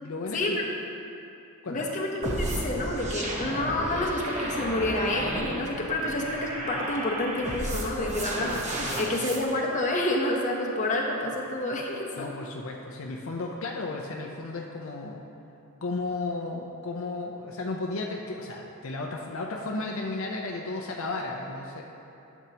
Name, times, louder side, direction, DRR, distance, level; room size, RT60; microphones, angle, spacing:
voice 1, 0.0-0.6 1.6-1.9 8.8-9.1 12.2-15.2 15.8-21.8, left 3 dB, 65° left, 0 dB, 0.6 m, -34 dB
voice 2, 1.7-12.3, left 1 dB, 35° left, -1 dB, 0.9 m, -29 dB
sound 1, 2.2-9.4, right 1 dB, 30° right, 0.9 m, -33 dB
11.5 x 7.2 x 2.9 m, 2.9 s
head